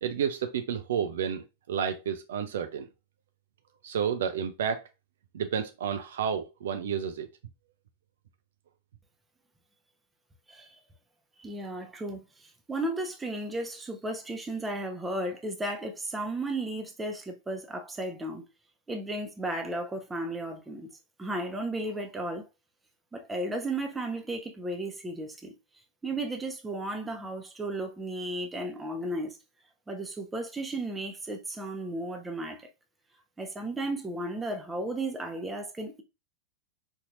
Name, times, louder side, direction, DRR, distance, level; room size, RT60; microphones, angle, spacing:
voice 1, 0.0-2.9 3.8-4.9 5.3-7.3, right 7 dB, 60° right, 0.4 m, -31 dB
voice 2, 11.4-18.4 18.9-20.9 21.2-22.4 23.1-25.5 26.0-29.4 29.9-32.6 33.4-36.0, right 1 dB, 10° right, 0.8 m, -34 dB
4.3 x 2.8 x 2.4 m
figure-of-eight pair, 90°, 0 cm